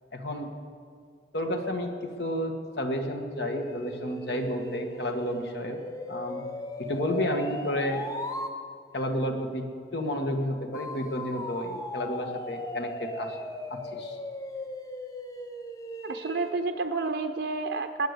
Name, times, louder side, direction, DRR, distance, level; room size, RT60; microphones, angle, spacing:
voice 1, 0.1-0.5 1.3-1.9 2.2-5.8 6.1-6.4 6.8-8.0 8.9-9.7 9.9-13.4 13.7-14.2, equal, 70° left, 4 dB, 1.8 m, -31 dB
sound 1, 3.3-8.5 10.7-16.6, left 1 dB, 20° left, 0.9 m, -38 dB
voice 2, 16.0-18.1, right 3 dB, 80° right, 6 dB, 0.7 m, -30 dB
20.5 x 9.0 x 6.8 m, 2.1 s
head